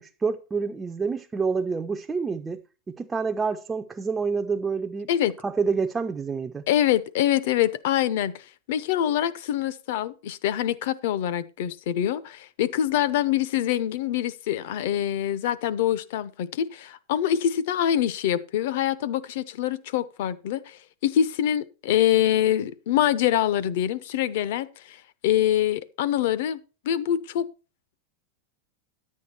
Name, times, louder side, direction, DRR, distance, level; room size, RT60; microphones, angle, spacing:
voice 1, 0.0-2.6 2.9-5.1 5.4-6.6, right 5 dB, 10° right, 0.4 m, -28 dB
voice 2, 6.7-25.0 25.2-26.6 26.8-27.5, left 11 dB, 55° left, 0.7 m, -25 dB
10.5 x 8.4 x 4.4 m
supercardioid pair, 175°, 0 cm